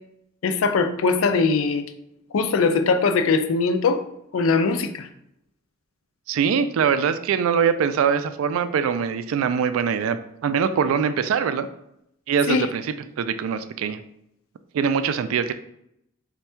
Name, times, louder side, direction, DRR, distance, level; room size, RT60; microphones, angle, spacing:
voice 1, 0.4-1.8 2.3-4.0 4.3-5.1 12.5-12.7, left 4 dB, 90° left, 8 dB, 0.4 m, -21 dB
voice 2, 6.3-10.2 10.4-11.7 12.3-12.9 13.2-14.0 14.7-15.5, right 7 dB, 90° right, 12 dB, 0.3 m, -22 dB
3.4 x 2.2 x 4.3 m, 0.77 s
head